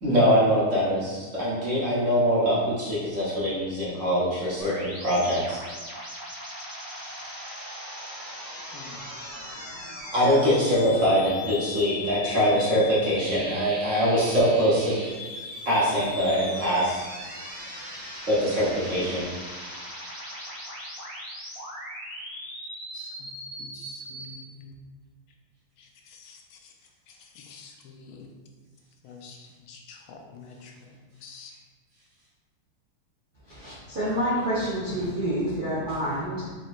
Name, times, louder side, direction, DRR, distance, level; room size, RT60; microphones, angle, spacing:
voice 1, 0.0-5.6 10.1-15.0 15.6-17.0 18.3-19.3, equal, 45° right, -8 dB, 1.2 m, -23 dB
sound 1, 4.6-24.3, left 1 dB, 20° left, 1.4 m, -39 dB
voice 2, 8.7-9.1 22.9-23.3 23.6-24.8 25.8-26.7 27.1-28.3 29.0-31.5, left 4 dB, 80° left, 2 dB, 1.4 m, -47 dB
voice 3, 33.5-36.6, equal, 80° right, -9 dB, 0.4 m, -28 dB
4.7 x 4.1 x 2.4 m, 1.4 s
omnidirectional pair, 2.3 m